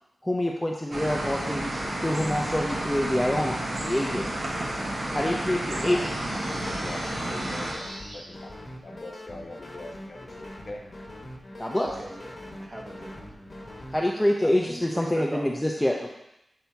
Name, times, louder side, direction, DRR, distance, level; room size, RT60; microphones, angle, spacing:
voice 1, 0.2-4.3 5.1-6.1 11.6-11.9 13.9-16.1, left 1 dB, 10° left, -1 dB, 0.6 m, -26 dB
sound 1, 0.9-7.7, right 1 dB, 60° right, 1.2 m, -31 dB
sound 2, 1.3-14.0, left 1 dB, 30° left, 1.0 m, -42 dB
voice 2, 5.5-10.8, left 2 dB, 55° left, 1 dB, 0.9 m, -42 dB
sound 3, 5.8-8.3, right 1 dB, 75° right, 0.9 m, -43 dB
voice 3, 11.8-13.4 14.2-15.4, right 1 dB, 35° right, 0 dB, 1.0 m, -40 dB
8.2 x 2.8 x 4.5 m, 0.84 s
wide cardioid pair, 70°, 0 cm